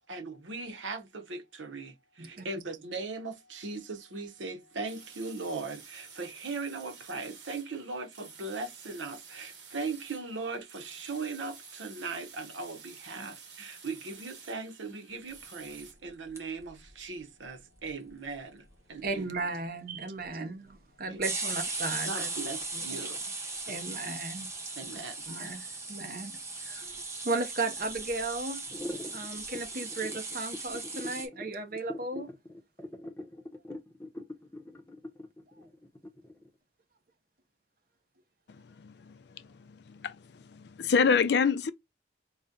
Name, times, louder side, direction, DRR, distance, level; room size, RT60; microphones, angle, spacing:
voice 1, 0.1-19.3 20.2-20.6 21.0-21.2 22.1-23.2 23.5-23.7 24.8-25.2, right 3 dB, 90° right, 0.8 m, -39 dB
sound 1, 4.9-15.9, right 5 dB, 75° right, 1.1 m, -51 dB
sound 2, 16.1-16.9 17.2-17.3 17.4-17.5 17.7-18.3 18.7-18.8 19.0-19.3 20.2-20.3 21.2-31.3, right 3 dB, 15° right, 0.9 m, -38 dB
voice 2, 19.0-22.3 22.7-23.0 23.7-24.5 25.3-28.6 29.1-32.3, right 3 dB, 50° right, 0.7 m, -36 dB
sound 3, 28.7-36.5, left 1 dB, 15° left, 0.6 m, -42 dB
voice 3, 38.8-39.1 39.9-40.2 40.5-41.7, left 5 dB, 60° left, 0.4 m, -26 dB
4.0 x 2.1 x 3.7 m
head